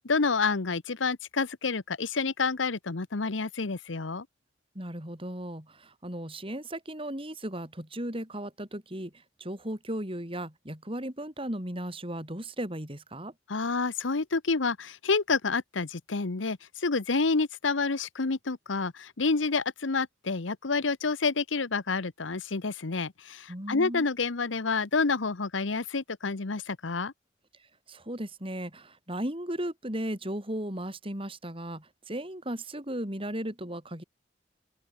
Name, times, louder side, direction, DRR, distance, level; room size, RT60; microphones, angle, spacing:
voice 1, 0.0-4.3 13.5-27.1, left 4 dB, 85° left, 1.0 m, -29 dB
voice 2, 4.8-9.1 9.4-13.3 23.5-24.1 27.9-34.0, right 1 dB, 30° right, 5.2 m, -36 dB
open air
head